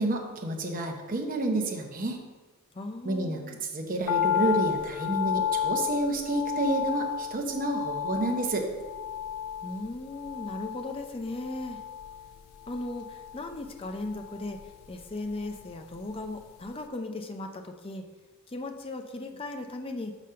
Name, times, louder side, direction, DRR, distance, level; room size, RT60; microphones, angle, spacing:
voice 1, 0.0-2.2 3.0-3.4 3.7-8.7, right 2 dB, 40° right, 2 dB, 0.8 m, -29 dB
voice 2, 2.7-3.6 9.6-11.8 12.7-14.6 14.9-18.0 18.5-20.1, left 2 dB, 25° left, 5 dB, 0.5 m, -37 dB
sound 1, 4.1-16.4 16.6-16.7, left 9 dB, 85° left, 0.3 m, -33 dB
5.4 x 5.0 x 5.6 m, 1.3 s
head